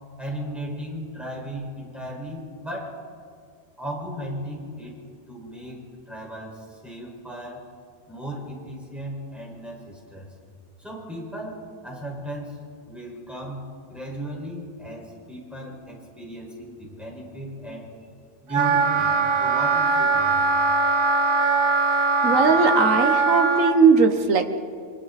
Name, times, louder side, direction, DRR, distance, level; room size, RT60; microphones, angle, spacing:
voice 1, 0.2-2.9 3.8-5.0 5.3-7.6 8.1-10.3 10.8-12.6 12.8-13.6 13.9-18.1 18.4-19.1 19.4-20.6, equal, ahead, -3 dB, 5.4 m, -36 dB
Wind instrument woodwind instrument, 18.5-23.7, right 3 dB, 70° right, 1.6 m, -21 dB
voice 2, 22.2-24.6, right 5 dB, 50° right, 7 dB, 1.5 m, -19 dB
28.0 x 23.5 x 4.2 m, 2.2 s
omnidirectional pair, 1.8 m